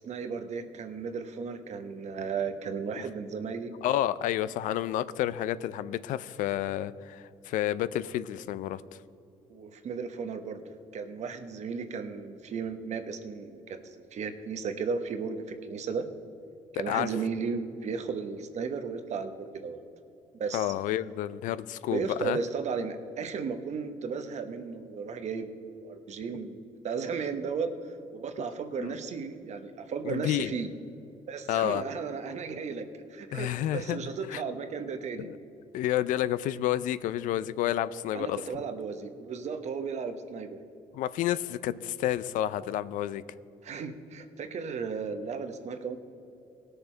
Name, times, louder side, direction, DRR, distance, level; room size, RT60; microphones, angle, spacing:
voice 1, 0.0-3.7 9.5-16.1 16.7-19.8 20.4-20.7 21.9-25.5 25.8-27.7 28.1-30.7 31.3-32.8 33.1-35.3 38.1-40.6 43.6-46.0, right 5 dB, 55° right, 8 dB, 1.0 m, -35 dB
voice 2, 3.8-8.8 16.9-17.1 20.5-22.4 28.8-28.9 30.0-30.5 31.5-31.8 33.3-34.4 35.2-35.4 35.7-38.5 40.9-43.2, left 12 dB, 75° left, 16 dB, 0.4 m, -30 dB
18.0 x 6.7 x 4.4 m, 2.7 s
supercardioid pair, 80°, 14 cm